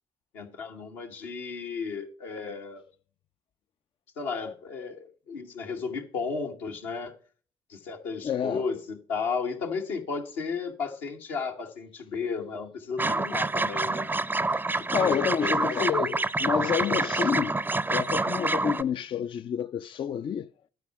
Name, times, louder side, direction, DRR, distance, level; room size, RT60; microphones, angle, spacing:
voice 1, 0.3-2.9 4.2-7.1 7.7-14.1 14.8-15.8 16.4-16.6, left 5 dB, 75° left, 1.3 m, -34 dB
voice 2, 8.2-8.7 14.9-17.6 17.9-20.5, left 8 dB, 45° left, 0.4 m, -29 dB
sound 1, 13.0-18.8, right 2 dB, 15° right, 0.5 m, -27 dB
12.0 x 4.8 x 5.8 m
hypercardioid pair, 40°, 12 cm